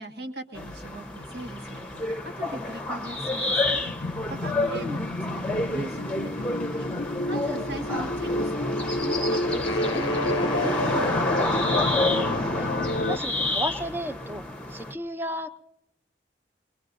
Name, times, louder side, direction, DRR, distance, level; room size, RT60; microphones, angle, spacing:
voice 1, 0.0-11.5, equal, 65° right, 4 dB, 1.8 m, -39 dB
sound 1, 0.5-14.9, left 2 dB, 5° left, 1.0 m, -29 dB
sound 2, 3.9-13.2, left 1 dB, 65° left, 0.5 m, -29 dB
sound 3, 9.7-13.0, left 3 dB, 30° left, 0.7 m, -37 dB
voice 2, 13.1-14.4 14.7-15.6, equal, 15° right, 10 dB, 0.6 m, -33 dB
23.0 x 21.5 x 2.6 m, 0.79 s
head